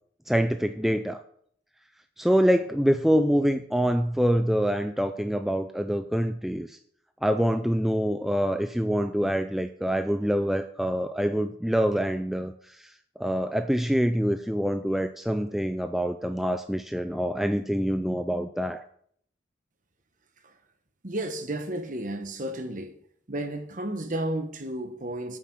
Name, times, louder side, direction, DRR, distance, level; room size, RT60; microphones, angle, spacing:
voice 1, 0.3-1.2 2.2-6.8 7.2-12.9 13.2-18.8, equal, ahead, 0.3 m, -25 dB
voice 2, 21.0-22.9 23.3-25.4, right 1 dB, 40° right, 1.2 m, -32 dB
9.4 x 7.0 x 5.9 m
head